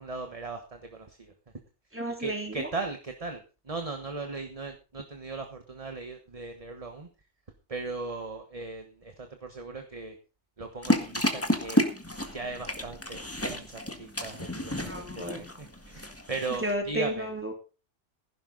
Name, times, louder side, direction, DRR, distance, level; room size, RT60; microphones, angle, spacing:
voice 1, 0.0-1.3 2.2-7.1 7.7-10.2 10.6-11.8 12.3-17.3, right 3 dB, 30° right, 6 dB, 1.3 m, -38 dB
voice 2, 1.9-2.7 14.9-15.4 16.6-17.5, right 1 dB, 10° right, 1 dB, 3.6 m, -32 dB
sound 1, 10.8-16.7, left 1 dB, 10° left, 1.7 m, -31 dB
15.5 x 11.0 x 4.0 m, 0.33 s
omnidirectional pair, 1.2 m